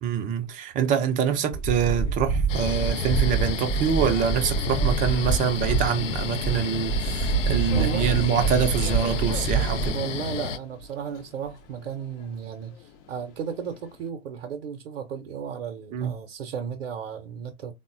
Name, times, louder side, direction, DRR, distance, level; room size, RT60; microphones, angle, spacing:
voice 1, 0.0-9.9 15.9-16.1, right 8 dB, 20° right, 0.5 m, -25 dB
sound 1, 1.5-9.9, right 4 dB, 10° left, 0.8 m, -26 dB
sound 2, 2.5-10.6, left 7 dB, 80° left, 0.5 m, -31 dB
Subway metro underground, 3.6-14.1, left 6 dB, 45° left, 0.7 m, -45 dB
voice 2, 7.7-8.2 9.9-17.7, right 7 dB, 65° right, 0.7 m, -34 dB
3.6 x 2.1 x 2.5 m
figure-of-eight pair, 100°, 37 cm